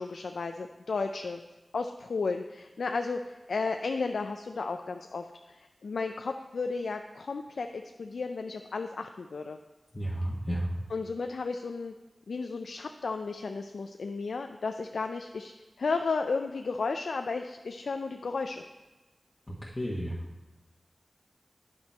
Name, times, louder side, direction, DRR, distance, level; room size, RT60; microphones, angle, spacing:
voice 1, 0.0-1.4 1.7-9.6 10.9-11.9 12.3-18.6, left 4 dB, 85° left, 6 dB, 0.3 m, -33 dB
voice 2, 9.9-10.7 19.5-20.2, equal, 30° left, -5 dB, 1.2 m, -32 dB
9.5 x 5.8 x 4.3 m, 1.1 s
cardioid pair, 45°, 0 cm